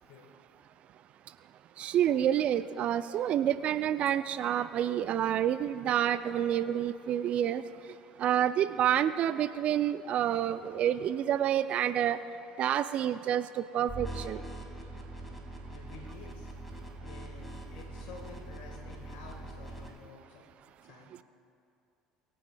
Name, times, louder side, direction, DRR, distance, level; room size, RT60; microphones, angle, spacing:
voice 1, 0.1-0.4 15.7-16.5 17.0-20.4 20.8-21.2, left 4 dB, 65° left, -1 dB, 1.5 m, -50 dB
voice 2, 1.8-7.6 8.2-12.2 12.6-14.4, right 10 dB, 50° right, 14 dB, 0.3 m, -28 dB
sound 1, 13.9-19.9, right 1 dB, 5° left, 2.1 m, -43 dB
25.0 x 9.1 x 2.3 m, 2.6 s
hypercardioid pair, 65°, 3 cm